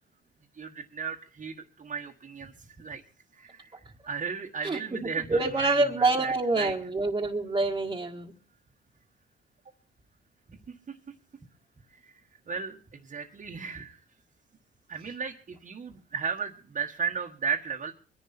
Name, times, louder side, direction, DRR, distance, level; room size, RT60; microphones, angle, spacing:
voice 1, 0.5-2.5 2.8-3.0 3.3-6.7 12.0-12.2 12.5-14.0 14.9-17.9, right 6 dB, 40° right, 0 dB, 1.5 m, -35 dB
voice 2, 4.6-8.3, right 2 dB, 20° right, -1 dB, 1.7 m, -27 dB
23.0 x 10.5 x 4.3 m, 0.37 s
cardioid pair, 90°, 20 cm